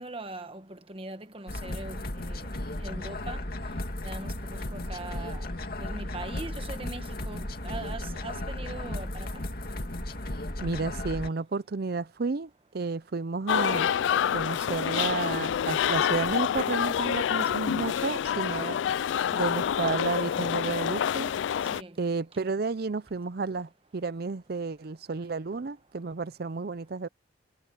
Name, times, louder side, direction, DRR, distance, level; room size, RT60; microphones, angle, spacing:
voice 1, 0.0-2.5 2.8-3.4 4.0-5.5 5.8-9.4 21.7-22.0, right 2 dB, 30° right, 1.4 m, -41 dB
sound 1, 1.5-11.3, left 1 dB, 55° left, 2.3 m, -35 dB
voice 2, 10.6-13.9 14.3-18.8 19.3-21.3 22.0-27.1, right 4 dB, 55° right, 0.6 m, -31 dB
sound 2, 13.5-21.8, left 9 dB, 80° left, 0.3 m, -27 dB
head